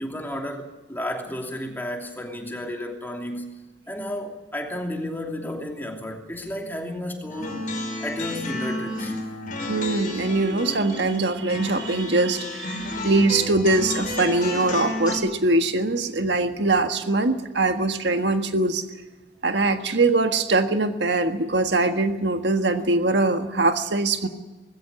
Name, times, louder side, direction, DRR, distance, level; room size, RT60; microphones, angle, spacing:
voice 1, 0.0-7.7 8.0-9.1, left 1 dB, 10° left, 1 dB, 2.9 m, -32 dB
sound 1, 7.3-15.2, left 2 dB, 45° left, 5.4 m, -31 dB
voice 2, 9.7-18.8 19.4-24.3, right 2 dB, 75° right, 6 dB, 1.6 m, -22 dB
19.5 x 16.5 x 9.9 m, 1.1 s
head